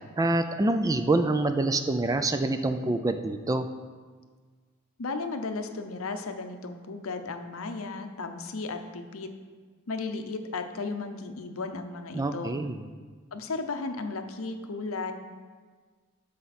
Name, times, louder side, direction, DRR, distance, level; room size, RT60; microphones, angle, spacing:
voice 1, 0.2-3.7 12.1-12.8, right 2 dB, 15° right, 8 dB, 0.3 m, -26 dB
voice 2, 5.0-9.3 9.9-12.6 13.3-15.1, left 3 dB, 70° left, 7 dB, 0.7 m, -35 dB
12.5 x 5.0 x 4.2 m, 1.5 s
head